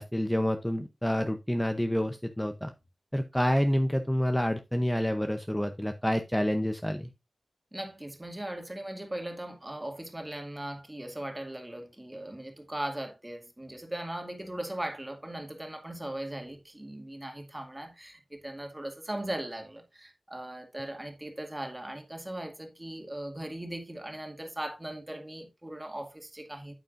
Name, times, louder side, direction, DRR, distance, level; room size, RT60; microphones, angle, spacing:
voice 1, 0.0-2.7 3.1-7.1, equal, 5° left, 0.7 m, -28 dB
voice 2, 7.7-26.7, right 1 dB, 20° right, 2.1 m, -39 dB
9.0 x 8.2 x 2.5 m
wide cardioid pair, 70°, 0 cm